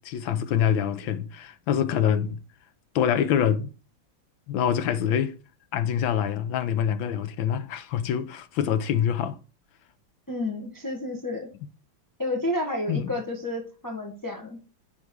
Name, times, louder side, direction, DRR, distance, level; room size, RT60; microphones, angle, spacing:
voice 1, 0.0-2.4 2.9-3.7 4.5-5.3 5.7-9.4 12.9-13.1, left 9 dB, 90° left, 1.5 m, -25 dB
voice 2, 10.3-11.5 12.2-14.6, left 1 dB, 10° left, 1.2 m, -30 dB
10.0 x 3.8 x 4.6 m
omnidirectional pair, 2.1 m